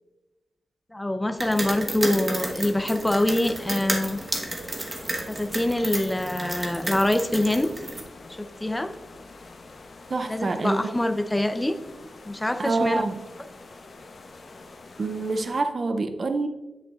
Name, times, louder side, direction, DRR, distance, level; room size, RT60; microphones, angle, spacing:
voice 1, 0.9-4.2 5.3-7.7 8.4-8.9 10.3-11.7 12.3-13.0, left 1 dB, 15° left, 9 dB, 0.6 m, -25 dB
sound 1, 1.4-8.0, right 1 dB, 25° right, 1.1 m, -32 dB
sound 2, 2.4-15.6, left 3 dB, 55° left, 1.0 m, -46 dB
voice 2, 10.1-10.9 12.6-13.1 15.0-16.5, right 3 dB, 50° right, 8 dB, 0.5 m, -26 dB
9.5 x 8.1 x 2.4 m, 1.1 s
wide cardioid pair, 90°, 0 cm